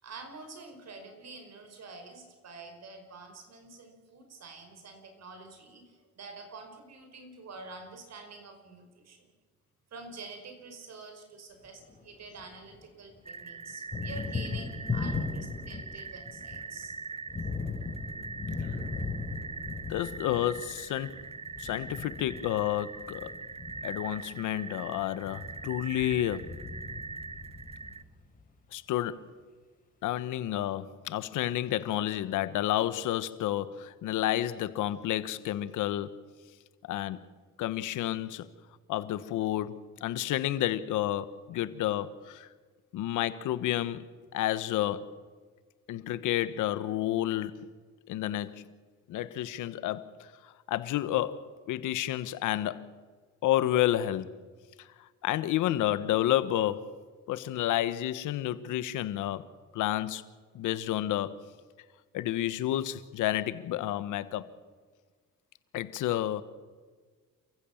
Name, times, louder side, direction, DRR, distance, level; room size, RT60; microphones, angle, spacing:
voice 1, 0.0-9.3 9.9-16.9, right 3 dB, 60° right, 5.4 m, -47 dB
Thunder, 11.7-12.9 13.1-28.4, left 4 dB, 25° left, 5.0 m, -38 dB
sound 1, 13.2-28.0, right 4 dB, 20° right, 0.7 m, -42 dB
voice 2, 19.9-21.2 21.6-23.3 23.8-26.5 28.7-29.3 30.0-36.2 36.9-37.2 37.6-38.5 38.9-42.5 42.9-44.0 44.3-45.1 45.9-47.7 48.1-48.6 49.1-52.9 53.4-54.4 54.8-56.9 57.3-59.5 59.7-60.2 60.5-61.4 62.1-64.5 65.7-66.4, left 13 dB, 90° left, 1.2 m, -30 dB
28.5 x 15.5 x 7.2 m
cardioid pair, 90°, 30 cm